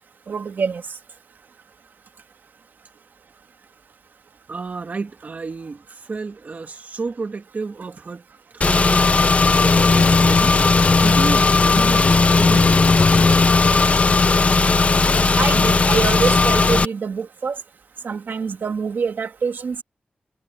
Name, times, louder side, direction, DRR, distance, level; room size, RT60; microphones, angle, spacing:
voice 1, 0.3-0.8 15.4-17.6 18.0-19.8, right 5 dB, 85° right, 2.3 m, -25 dB
voice 2, 4.5-8.2 8.5-10.5 10.9-13.3, right 4 dB, 55° right, 1.9 m, -31 dB
Car / Engine, 8.6-16.9, left 3 dB, 45° left, 0.8 m, -16 dB
wide cardioid pair, 110°, 3 cm